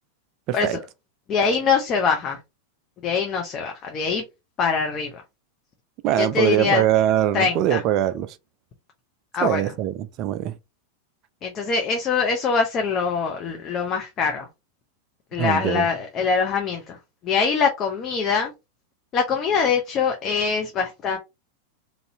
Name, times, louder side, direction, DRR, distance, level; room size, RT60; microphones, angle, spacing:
voice 1, 0.5-0.8 6.0-8.4 9.4-10.6 15.4-15.9, right 11 dB, 40° right, 0.3 m, -22 dB
voice 2, 1.3-2.4 3.0-4.2 4.6-5.1 6.2-6.8 7.3-7.8 9.3-9.6 11.4-14.5 15.3-17.0 17.2-18.5 19.1-21.2, left 5 dB, 30° left, 0.6 m, -23 dB
3.0 x 2.6 x 2.7 m
figure-of-eight pair, 90°, 0 cm